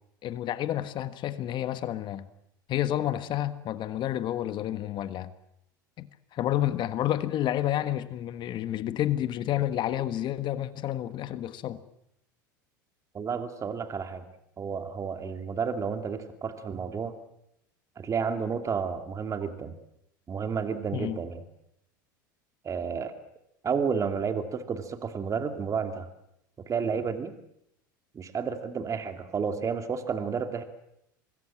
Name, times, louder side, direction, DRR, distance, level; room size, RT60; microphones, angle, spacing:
voice 1, 0.2-2.3 2.7-5.3 6.0-11.8 20.9-21.2, left 12 dB, 45° left, 1.5 m, -30 dB
voice 2, 13.1-14.2 14.6-17.2 18.0-19.7 20.3-21.4 22.6-23.1 23.6-26.1 26.7-27.3 28.1-30.6, right 6 dB, 30° right, 2.4 m, -31 dB
25.5 x 20.5 x 7.5 m
hypercardioid pair, 85°, 11 cm